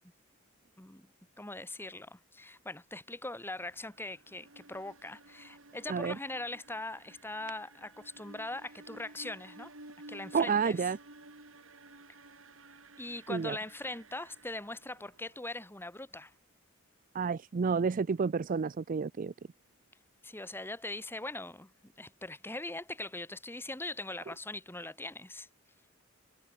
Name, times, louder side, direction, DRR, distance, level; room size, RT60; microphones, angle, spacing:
voice 1, 0.8-9.7 10.1-10.8 13.0-16.3 20.2-25.5, left 2 dB, 10° left, 2.6 m, -41 dB
sound 1, 3.6-15.4, right 2 dB, 70° right, 6.7 m, -54 dB
voice 2, 10.3-11.0 13.3-13.6 17.1-19.3, right 5 dB, 40° right, 0.4 m, -30 dB
head